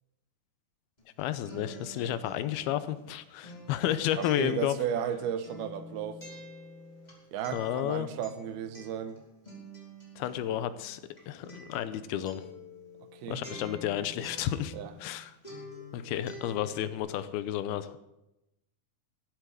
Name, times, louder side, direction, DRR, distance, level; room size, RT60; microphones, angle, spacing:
Acoustic guitar, 1.0-15.2 15.4-17.0, left 1 dB, 10° left, 4.2 m, -48 dB
voice 1, 1.2-4.8 7.5-8.1 10.2-11.0 11.3-12.4 13.3-15.3 15.9-18.0, left 12 dB, 80° left, 2.7 m, -32 dB
voice 2, 4.2-6.2 7.3-9.2 13.1-13.4 14.7-14.9, right 9 dB, 85° right, 3.0 m, -34 dB
14.5 x 8.2 x 9.2 m
omnidirectional pair, 4.4 m